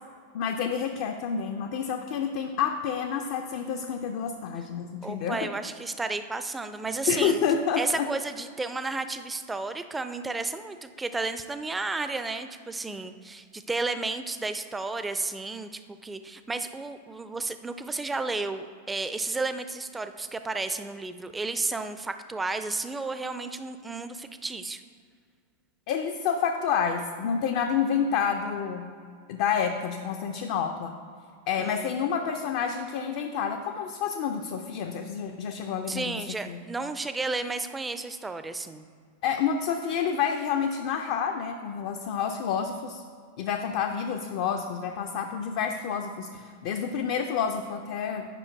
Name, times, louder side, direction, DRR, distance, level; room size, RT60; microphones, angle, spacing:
voice 1, 0.3-5.5 7.1-8.1 25.9-28.9 29.3-31.0 31.5-36.6 39.2-43.0 43.4-48.3, left 7 dB, 50° left, 4 dB, 0.5 m, -29 dB
voice 2, 5.0-7.4 7.8-24.8 31.6-31.9 35.9-38.9, right 3 dB, 10° right, 10 dB, 0.5 m, -32 dB
9.1 x 5.6 x 4.5 m, 2.2 s
figure-of-eight pair, 90°, 0 cm